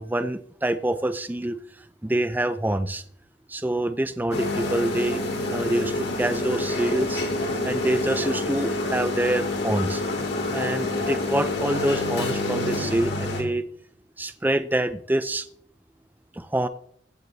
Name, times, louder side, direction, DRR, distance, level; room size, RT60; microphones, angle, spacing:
voice 1, 0.0-3.0 3.5-7.2 7.6-10.0 10.5-13.6 14.2-15.5 16.3-16.7, right 1 dB, 10° right, 11 dB, 0.4 m, -26 dB
sound 1, 4.3-13.4, left 2 dB, 60° left, 2.6 m, -27 dB
16.0 x 9.4 x 2.7 m, 0.64 s
head